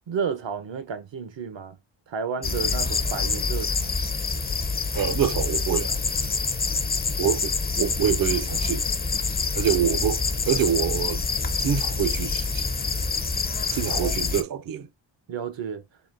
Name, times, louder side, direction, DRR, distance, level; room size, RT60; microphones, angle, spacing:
voice 1, 0.0-1.8 2.1-3.8 13.9-14.2 15.3-15.8, right 6 dB, 65° right, 0.9 m, -31 dB
sound 1, 2.4-14.4, left 4 dB, 20° left, 0.5 m, -26 dB
voice 2, 4.9-6.0 7.2-8.8 9.5-11.2 11.6-12.7 13.7-14.9, right 9 dB, 45° right, 0.5 m, -26 dB
4.0 x 3.9 x 2.5 m
cardioid pair, 80°, 47 cm